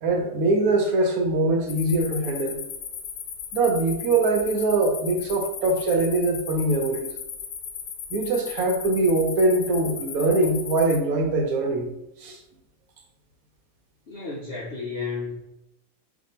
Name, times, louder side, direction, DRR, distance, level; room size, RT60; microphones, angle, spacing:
voice 1, 0.0-2.6 3.5-7.1 8.1-11.9 12.2-12.4, right 2 dB, 70° right, 2 dB, 1.0 m, -22 dB
sound 1, 1.7-11.0, left 7 dB, 90° left, 1.2 m, -36 dB
voice 2, 14.1-15.4, left 4 dB, 65° left, -4 dB, 0.6 m, -32 dB
2.7 x 2.5 x 4.1 m, 0.86 s
omnidirectional pair, 1.7 m